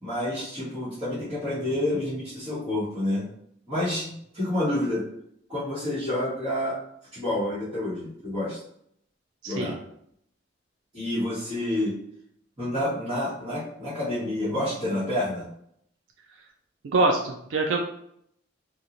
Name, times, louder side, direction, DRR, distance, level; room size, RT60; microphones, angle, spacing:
voice 1, 0.0-3.2 3.7-5.1 5.5-6.8 7.1-8.6 9.4-9.8 10.9-11.9 12.6-15.5, left 1 dB, 30° right, -13 dB, 1.2 m, -28 dB
voice 2, 9.4-9.8 16.8-17.8, right 2 dB, 80° right, 2 dB, 0.4 m, -24 dB
2.9 x 2.4 x 2.5 m, 0.70 s
head